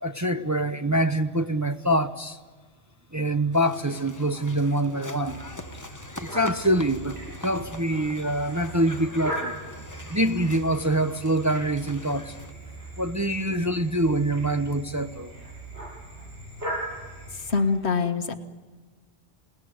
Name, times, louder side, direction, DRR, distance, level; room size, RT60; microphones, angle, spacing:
voice 1, 0.0-2.4 3.1-5.4 5.7-5.8 6.2-9.6 10.1-12.3 13.0-15.3, right 1 dB, 15° right, 0.8 m, -25 dB
sound 1, 3.5-12.5, left 2 dB, 15° left, 1.0 m, -43 dB
sound 2, 5.2-17.6, right 1 dB, 65° right, 8.3 m, -39 dB
sound 3, 7.5-9.1, equal, 35° right, 4.0 m, -53 dB
voice 2, 17.3-18.3, left 4 dB, 70° left, 1.7 m, -25 dB
28.5 x 19.0 x 9.6 m
omnidirectional pair, 1.2 m